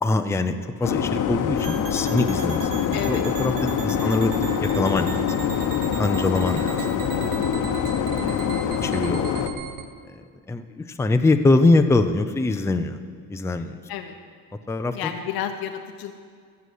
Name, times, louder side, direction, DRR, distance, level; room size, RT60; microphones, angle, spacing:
voice 1, 0.0-5.3 5.9-7.4 8.2-9.5 10.1-13.0 13.3-13.8 14.7-15.1, left 2 dB, 10° left, 7 dB, 0.5 m, -24 dB
sound 1, 0.8-9.5, left 8 dB, 60° left, 1.0 m, -25 dB
sound 2, 1.6-9.9, right 7 dB, 65° right, 1.1 m, -36 dB
voice 2, 2.9-3.2 3.9-4.2 13.9-14.2 14.9-16.1, left 9 dB, 85° left, 6 dB, 0.9 m, -31 dB
15.0 x 7.0 x 9.4 m, 2.1 s
cardioid pair, 130°, 36 cm